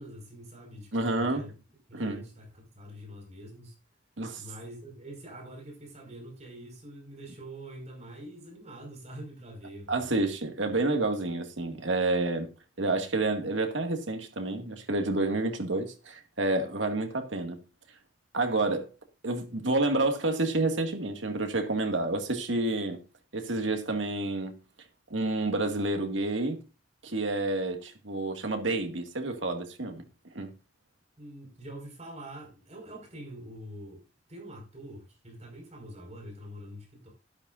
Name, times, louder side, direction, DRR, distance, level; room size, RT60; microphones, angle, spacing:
voice 1, 0.0-1.5 1.9-3.8 4.4-10.1 31.2-34.0 34.3-37.1, right 1 dB, 35° right, 5.3 m, -45 dB
voice 2, 0.9-1.5 1.9-2.2 4.2-4.4 9.9-12.5 12.8-17.6 18.3-18.9 19.2-23.0 23.3-24.6 25.1-26.6 27.0-30.0 30.3-30.5, right 2 dB, 80° right, 2.1 m, -29 dB
12.5 x 12.0 x 2.6 m
head